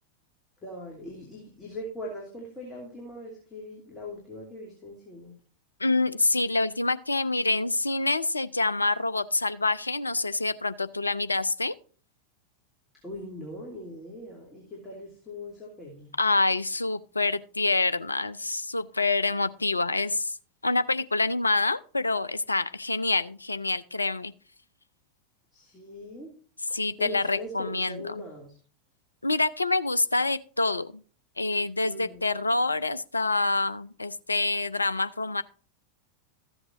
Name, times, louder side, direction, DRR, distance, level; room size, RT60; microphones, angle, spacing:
voice 1, 0.6-5.3 13.0-16.1 25.5-26.3 26.7-28.5 31.8-32.2, left 1 dB, 15° left, -3 dB, 2.8 m, -41 dB
voice 2, 5.8-11.7 16.2-20.3 20.6-24.3 26.7-28.2 29.2-30.9 31.4-35.4, left 2 dB, 80° left, 15 dB, 0.4 m, -26 dB
14.0 x 7.9 x 2.9 m, 0.40 s
figure-of-eight pair, 90°, 0 cm